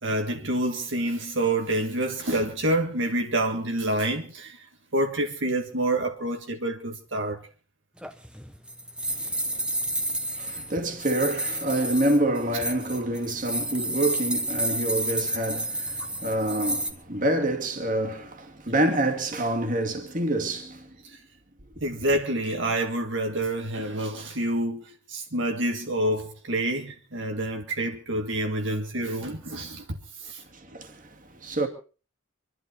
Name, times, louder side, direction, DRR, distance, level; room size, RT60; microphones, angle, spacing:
voice 1, 0.0-4.7 4.9-7.4 16.0-16.1 21.1-21.2 21.8-30.4, right 1 dB, 70° right, 1.7 m, -28 dB
sound 1, 8.0-16.9, right 1 dB, 5° right, 1.1 m, -30 dB
voice 2, 9.1-21.0 30.5-31.7, right 1 dB, 40° right, 2.4 m, -27 dB
25.5 x 11.5 x 4.3 m
head